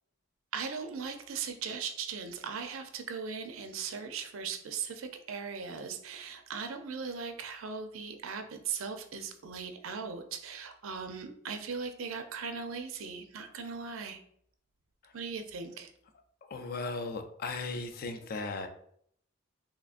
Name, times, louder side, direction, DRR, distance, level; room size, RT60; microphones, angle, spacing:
voice 1, 0.5-14.2 15.1-15.9, right 5 dB, 70° right, 7 dB, 0.5 m, -39 dB
voice 2, 16.5-18.7, left 3 dB, 45° left, 7 dB, 0.4 m, -37 dB
3.6 x 3.1 x 2.4 m, 0.66 s
head